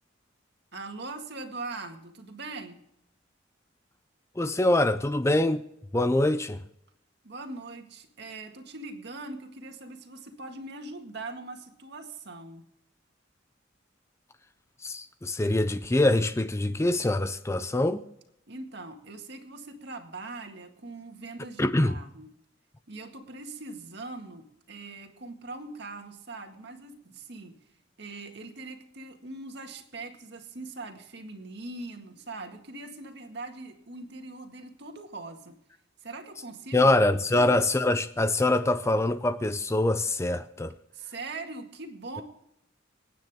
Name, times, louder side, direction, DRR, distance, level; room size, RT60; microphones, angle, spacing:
voice 1, 0.7-2.8 7.2-12.7 18.5-22.3 22.9-27.6 28.0-35.6 36.0-37.5 40.9-42.2, right 3 dB, 60° right, 1.9 m, -41 dB
voice 2, 4.4-5.6 5.9-6.6 14.8-18.0 21.6-22.0 36.7-40.7, left 2 dB, 15° left, 0.5 m, -24 dB
27.5 x 9.2 x 3.6 m
head